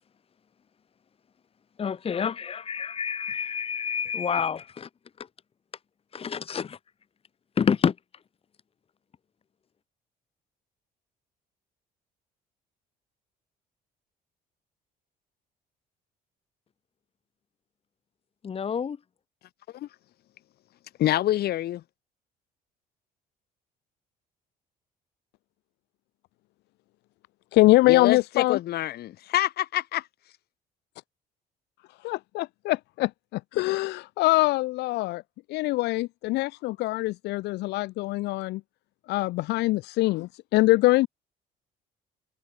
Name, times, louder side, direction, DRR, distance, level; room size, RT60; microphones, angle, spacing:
voice 1, 1.8-4.9 6.1-6.8 7.6-7.9 18.4-19.0, left 7 dB, 35° left, 1.6 m, -28 dB
voice 2, 21.0-21.8 27.8-30.0, left 13 dB, 70° left, 4.9 m, -26 dB
voice 3, 27.5-28.6 32.0-35.2 35.5-38.6 39.1-41.1, left 19 dB, 85° left, 1.0 m, -23 dB
cardioid pair, 110°, 17 cm